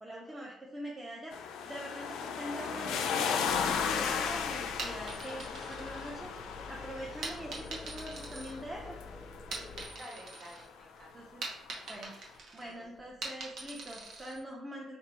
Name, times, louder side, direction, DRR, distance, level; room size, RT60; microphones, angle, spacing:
voice 1, 0.0-1.4 1.6-6.3 6.7-9.0 11.1-11.4 11.8-12.1 12.5-15.0, right 1 dB, 20° right, -2 dB, 0.5 m, -43 dB
sound 1, 1.3-10.4 11.7-11.8, left 7 dB, 90° left, 0.3 m, -35 dB
Engine, 3.5-9.9, left 3 dB, 25° left, 0.6 m, -47 dB
sound 2, 4.8-6.6 7.2-9.0 9.4-10.7 11.0-14.4, right 3 dB, 75° right, 0.9 m, -43 dB
voice 2, 9.9-11.3 12.5-12.7, equal, 40° right, -2 dB, 1.2 m, -52 dB
2.7 x 2.6 x 4.3 m, 0.95 s
cardioid pair, 90°, 0 cm